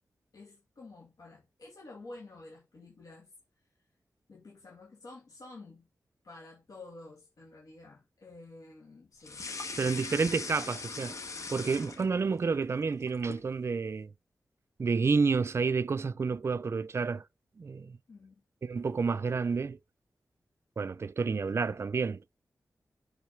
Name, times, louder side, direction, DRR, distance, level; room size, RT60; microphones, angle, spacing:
voice 1, 0.3-3.3 4.3-5.9 6.2-9.4 9.8-10.3 18.1-18.4, left 2 dB, 75° left, 2.4 m, -50 dB
sound 1, 9.2-12.4 12.8-13.5, left 4 dB, 60° left, 1.3 m, -40 dB
voice 2, 9.8-11.2 11.5-14.1 14.8-17.2 17.6-18.0 18.6-19.8 20.8-22.2, right 4 dB, 45° right, 0.5 m, -30 dB
6.3 x 5.2 x 4.5 m
wide cardioid pair, 120°, 6 cm